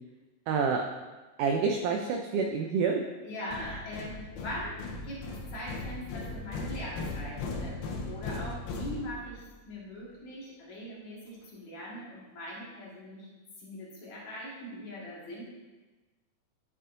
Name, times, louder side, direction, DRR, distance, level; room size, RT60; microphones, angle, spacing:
voice 1, 0.5-0.8 1.4-3.0 3.7-3.8, right 5 dB, 80° right, 3 dB, 1.8 m, -28 dB
voice 2, 3.2-4.8 5.0-13.3 13.6-15.4, equal, 55° left, -6 dB, 3.0 m, -41 dB
sound 1, 3.5-9.5, left 3 dB, 85° left, 2.8 m, -38 dB
11.5 x 6.8 x 2.6 m, 1.2 s
omnidirectional pair, 4.3 m